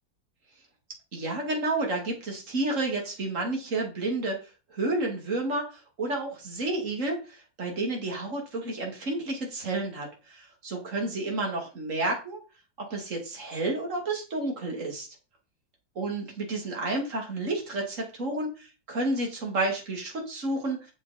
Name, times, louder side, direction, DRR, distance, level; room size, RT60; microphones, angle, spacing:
voice 1, 1.1-4.4 4.7-12.4 12.9-15.1 16.0-20.9, right 2 dB, 45° right, 0 dB, 3.0 m, -30 dB
8.4 x 6.8 x 4.3 m, 0.31 s
omnidirectional pair, 1.8 m